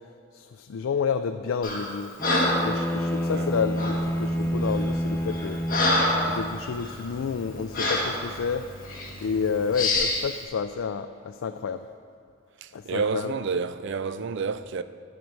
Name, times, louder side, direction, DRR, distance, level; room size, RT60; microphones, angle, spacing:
voice 1, 0.3-2.1 2.6-5.6 6.3-8.7 9.2-11.9 12.7-13.3, left 6 dB, 80° left, 0.4 m, -30 dB
Breathing, 1.6-1.9 2.2-2.7 3.8-4.0 4.7-4.9 5.3-6.3 6.8-7.0 7.7-8.2 8.9-9.1 9.7-10.2, left 2 dB, 45° left, 1.6 m, -25 dB
Bowed string instrument, 2.2-6.7, equal, 10° left, 0.5 m, -28 dB
sound 1, 4.0-10.0, equal, 45° right, 2.2 m, -44 dB
voice 2, 12.6-14.8, right 5 dB, 65° right, 0.4 m, -29 dB
10.0 x 9.4 x 4.7 m
head